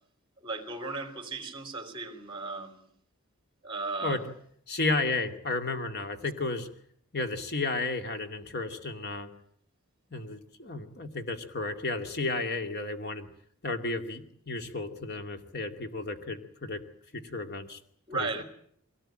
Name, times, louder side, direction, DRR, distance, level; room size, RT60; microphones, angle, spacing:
voice 1, 0.4-2.9 3.6-4.2 18.1-18.4, right 3 dB, 25° right, 6 dB, 3.5 m, -35 dB
voice 2, 4.7-6.7 7.1-9.3 10.1-13.3 13.6-16.8 17.1-17.8 18.2-18.4, left 3 dB, 50° left, 6 dB, 2.4 m, -33 dB
22.5 x 18.0 x 9.0 m, 0.66 s
head